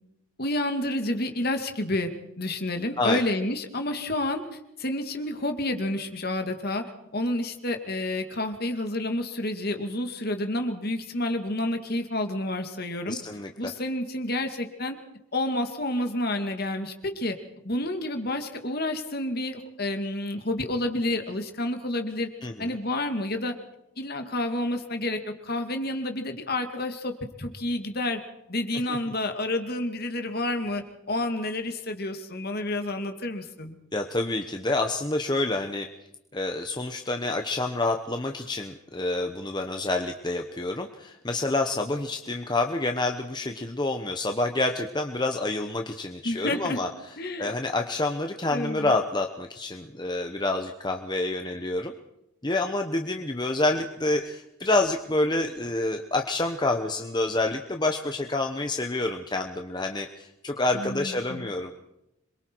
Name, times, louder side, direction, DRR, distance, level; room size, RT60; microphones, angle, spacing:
voice 1, 0.4-2.1 2.4-4.4 4.8-6.8 7.1-13.2 13.6-15.0 15.3-17.4 17.6-22.3 22.6-23.5 24.0-28.2 28.5-33.8 46.2-46.8 47.2-47.5 48.5-48.9 60.7-61.5, left 1 dB, 45° left, 6 dB, 2.1 m, -29 dB
voice 2, 13.1-13.7 22.4-22.7 28.9-29.0 33.9-35.9 36.3-46.9 47.4-51.9 52.4-61.7, left 2 dB, 20° left, 4 dB, 1.0 m, -28 dB
26.5 x 23.0 x 4.6 m, 0.86 s
head